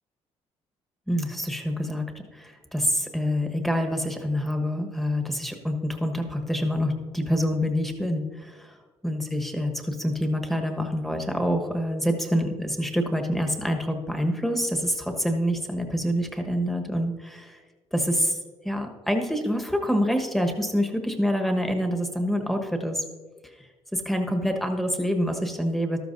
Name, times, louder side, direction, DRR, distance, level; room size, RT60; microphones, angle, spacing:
voice 1, 1.1-8.7 9.0-17.6 17.9-18.4 18.6-23.0 23.9-26.0, equal, ahead, 4 dB, 1.3 m, -26 dB
13.0 x 13.0 x 2.6 m, 1.4 s
cardioid pair, 115°, 11 cm